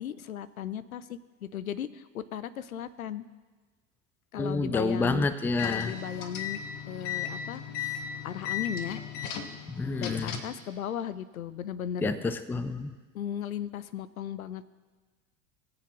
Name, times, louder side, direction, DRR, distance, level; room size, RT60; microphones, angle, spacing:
voice 1, 0.0-3.2 4.3-5.3 5.6-6.6 6.9-9.0 10.0-12.1 13.1-14.6, left 9 dB, 85° left, 16 dB, 0.6 m, -36 dB
voice 2, 4.4-5.9 9.7-10.4 12.0-12.9, left 3 dB, 5° left, 13 dB, 0.4 m, -29 dB
sound 1, 5.4-10.6, left 8 dB, 55° left, 1.4 m, -36 dB
21.5 x 7.8 x 3.1 m, 1.3 s
hypercardioid pair, 80°, 41 cm